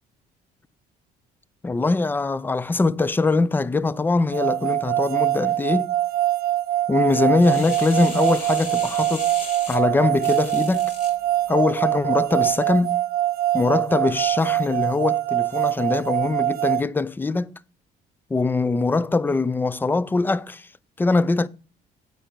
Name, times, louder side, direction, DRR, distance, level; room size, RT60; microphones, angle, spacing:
voice 1, 1.6-5.9 6.9-9.3 9.7-10.9 11.5-13.0 13.5-17.5 18.3-20.7 21.0-21.5, left 3 dB, 10° left, 0.3 m, -22 dB
sound 1, 4.3-16.8, right 14 dB, 65° right, 0.6 m, -23 dB
sound 2, 7.4-11.2 11.7-11.8, left 3 dB, 55° left, 2.9 m, -37 dB
9.1 x 5.0 x 5.9 m
cardioid pair, 110°, 17 cm